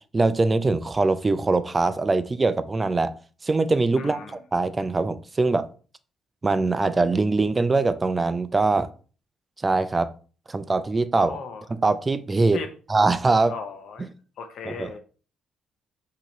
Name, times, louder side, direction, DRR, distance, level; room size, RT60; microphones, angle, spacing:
voice 1, 0.1-3.1 3.4-4.2 4.5-5.7 6.4-8.9 9.6-10.1 10.5-11.4 11.7-12.6 12.9-13.5 14.7-14.9, right 3 dB, 25° right, 0.4 m, -22 dB
voice 2, 4.0-4.4 11.2-11.7 12.5-12.7 13.5-14.1 14.4-15.0, left 5 dB, 70° left, 0.7 m, -36 dB
5.7 x 2.9 x 3.0 m
cardioid pair, 90°, 0 cm